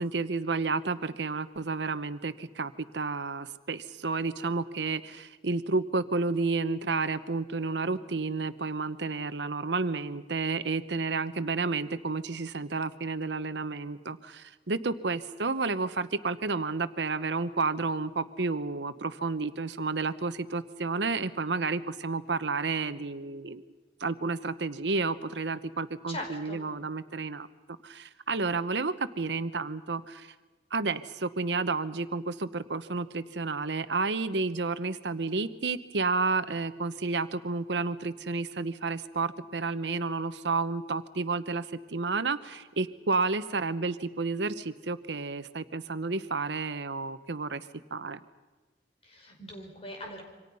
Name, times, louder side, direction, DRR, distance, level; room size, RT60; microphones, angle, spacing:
voice 1, 0.0-23.6 24.0-27.5 27.8-30.3 30.7-47.6 47.9-48.2, right 3 dB, 75° right, 12 dB, 1.0 m, -31 dB
voice 2, 26.1-26.6 49.0-50.2, left 1 dB, 35° left, 2 dB, 5.1 m, -40 dB
27.5 x 25.0 x 5.5 m, 1.3 s
head